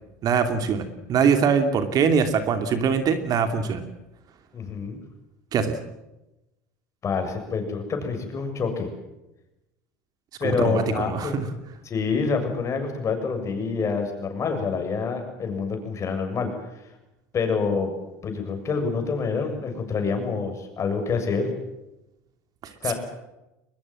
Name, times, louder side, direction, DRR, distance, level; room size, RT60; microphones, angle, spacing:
voice 1, 0.2-3.8 5.5-5.7 10.6-11.5 22.9-23.0, right 6 dB, 45° right, 8 dB, 2.8 m, -22 dB
voice 2, 4.5-5.0 7.0-8.9 10.4-11.4 11.8-16.5 17.3-17.9 18.2-21.5 22.8-22.9, left 5 dB, 35° left, 5 dB, 7.2 m, -27 dB
22.5 x 20.5 x 7.7 m, 0.95 s
supercardioid pair, 100°, 9 cm